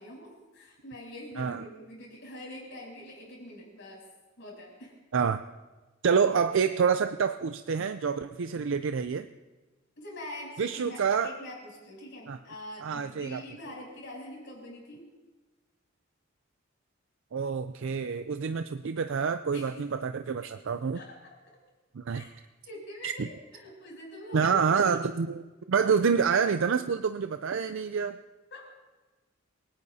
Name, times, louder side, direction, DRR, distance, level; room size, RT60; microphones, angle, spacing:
voice 1, 0.0-4.0 4.4-5.0 10.0-15.1 19.5-19.9 20.9-21.4 22.1-22.3 22.6-25.0 28.5-28.6, left 1 dB, 65° left, -2 dB, 7.6 m, -44 dB
voice 2, 6.0-9.3 10.6-11.3 12.3-12.4 12.8-13.4 17.3-21.0 22.0-22.2 23.0-23.3 24.3-25.3 25.7-28.2, right 6 dB, 65° right, 9 dB, 0.5 m, -27 dB
28.0 x 18.0 x 2.8 m, 1.2 s
head